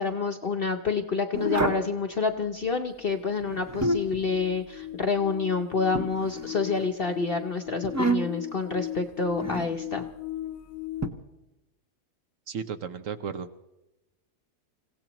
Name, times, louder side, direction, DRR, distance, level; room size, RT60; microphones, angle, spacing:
voice 1, 0.0-10.1, left 4 dB, 50° left, 5 dB, 0.7 m, -28 dB
sound 1, 1.3-1.9 3.4-4.2 5.9-6.8 7.8-8.5 9.4-9.7 11.0-11.1, right 1 dB, 15° right, 0.5 m, -28 dB
sound 2, 3.0-11.1, left 13 dB, 80° left, 1.3 m, -38 dB
voice 2, 12.5-13.5, right 7 dB, 60° right, 9 dB, 1.0 m, -34 dB
27.5 x 16.5 x 3.0 m, 0.98 s
omnidirectional pair, 1.7 m